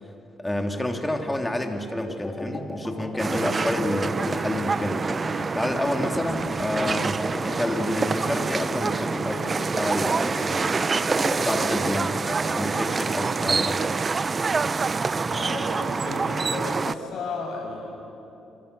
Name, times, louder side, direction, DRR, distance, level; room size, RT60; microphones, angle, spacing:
voice 1, 0.4-5.1 5.5-11.0 11.4-12.1 12.5-14.0, left 1 dB, 10° left, 4 dB, 2.9 m, -29 dB
sound 1, 2.1-12.9, left 2 dB, 30° left, 3.5 m, -36 dB
sound 2, 3.2-16.9, right 4 dB, 35° right, 0.7 m, -26 dB
voice 2, 15.2-17.9, left 3 dB, 75° left, 0 dB, 6.8 m, -33 dB
28.0 x 25.5 x 6.9 m, 3.0 s
cardioid pair, 90°, 0 cm